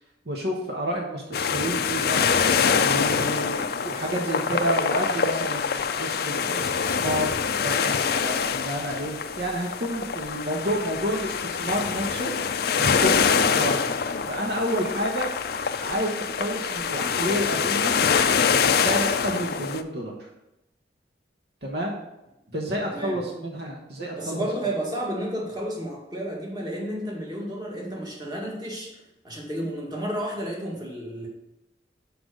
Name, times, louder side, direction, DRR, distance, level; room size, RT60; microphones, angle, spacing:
voice 1, 0.3-2.2 2.8-7.3 7.6-14.0 14.3-15.3 15.8-17.9 18.5-20.1 21.6-22.0 22.5-24.4, equal, 60° right, 0 dB, 1.2 m, -30 dB
sound 1, 1.3-19.8, left 6 dB, 60° left, 0.4 m, -25 dB
voice 2, 22.9-23.2 24.2-28.9 29.2-31.3, right 1 dB, 25° right, -2 dB, 1.8 m, -31 dB
6.0 x 5.1 x 6.3 m, 0.92 s
head